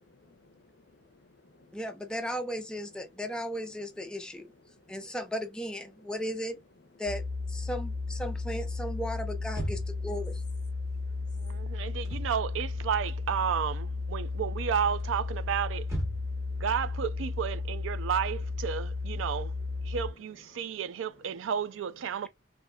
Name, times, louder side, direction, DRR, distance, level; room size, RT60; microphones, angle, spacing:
voice 1, 0.1-1.8 4.7-5.1 6.0-6.1 9.5-9.6 10.7-12.3 14.2-14.4 16.1-16.7 18.0-18.1 19.3-20.0 20.5-21.5 22.2-22.3, left 3 dB, 60° left, 0.5 m, -59 dB
voice 2, 1.7-4.5 4.9-6.6 7.0-10.4, equal, 5° left, 0.4 m, -36 dB
sound 1, 7.1-20.1, left 3 dB, 60° right, 1.1 m, -34 dB
sound 2, 9.5-10.1 11.9-12.4 12.7-13.6 13.9-14.3 15.0-16.5, right 1 dB, 15° right, 1.1 m, -37 dB
voice 3, 11.4-15.9 16.6-19.5 19.9-22.3, right 8 dB, 90° right, 0.3 m, -32 dB
3.4 x 2.5 x 2.2 m
head